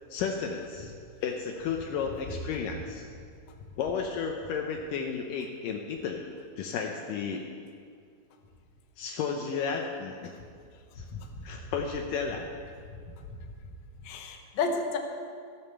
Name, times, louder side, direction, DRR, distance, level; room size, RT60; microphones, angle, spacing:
voice 1, 0.1-0.9 1.2-3.0 3.8-6.3 6.6-7.5 9.0-10.3 11.0-11.1 11.4-12.5, left 6 dB, 85° left, 2 dB, 1.9 m, -33 dB
voice 2, 10.9-11.4 13.1-13.4 14.0-15.0, left 4 dB, 70° left, 3 dB, 1.8 m, -33 dB
14.5 x 8.9 x 6.8 m, 2.2 s
omnidirectional pair, 4.9 m